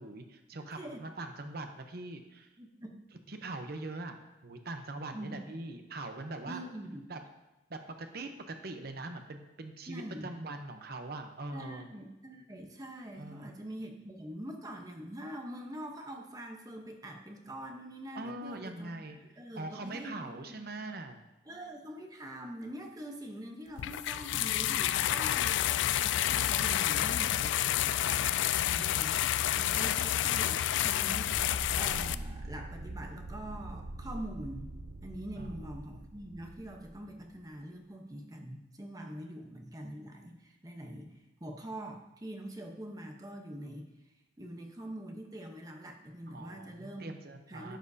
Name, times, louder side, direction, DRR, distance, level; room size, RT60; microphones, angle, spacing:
voice 1, 0.0-2.5 3.3-4.2 4.4-6.6 7.1-7.2 7.7-11.9 13.2-13.5 18.1-19.2 19.5-21.2 28.7-29.2 35.4-35.7 46.3-47.8, right 2 dB, 55° right, 6 dB, 0.8 m, -42 dB
voice 2, 0.7-1.1 2.6-3.0 5.1-5.4 6.5-7.0 9.9-10.3 11.5-20.8 21.5-28.3 28.6-29.3 29.6-34.7 35.0-41.1 41.4-43.9 44.4-47.1 47.5-47.8, right 1 dB, 20° right, 2 dB, 0.9 m, -44 dB
sound 1, 23.8-32.1, left 12 dB, 80° left, 0.3 m, -29 dB
sound 2, 31.3-37.5, right 2 dB, 90° right, 0.7 m, -43 dB
11.5 x 7.7 x 2.7 m, 1.0 s
head